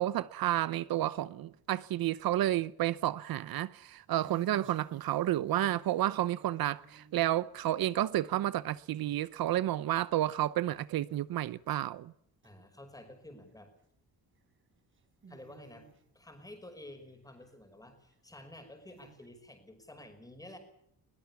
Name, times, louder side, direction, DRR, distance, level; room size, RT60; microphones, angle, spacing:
voice 1, 0.0-12.1, right 13 dB, 70° right, 0.8 m, -31 dB
sound 1, 3.8-8.9 9.3-9.7 10.2-10.3 10.5-10.6 11.1-11.2 12.4-12.5 13.5-13.8 14.4-14.5 14.8-16.4 16.9-17.4 18.1-18.2 18.9-19.3, right 6 dB, 35° right, 3.9 m, -56 dB
voice 2, 12.4-13.7 15.3-15.9 16.1-20.6, left 1 dB, 10° left, 5.5 m, -51 dB
22.0 x 20.0 x 7.1 m
wide cardioid pair, 180°, 37 cm